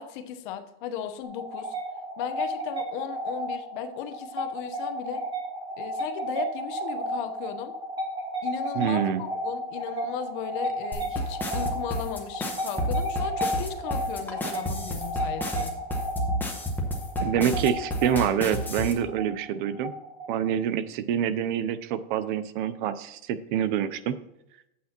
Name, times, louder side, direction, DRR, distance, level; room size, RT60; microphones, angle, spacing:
voice 1, 0.0-1.7 2.2-5.2 5.8-7.7 8.4-15.8, left 9 dB, 55° left, 8 dB, 1.0 m, -36 dB
sound 1, 1.2-20.6, equal, 15° right, 2.0 m, -33 dB
voice 2, 8.8-9.2 17.2-19.9 20.3-24.2, right 9 dB, 55° right, 14 dB, 0.6 m, -26 dB
sound 2, 10.9-18.9, equal, 5° left, 1.1 m, -30 dB
10.5 x 8.4 x 2.9 m, 0.85 s
supercardioid pair, 150°, 30 cm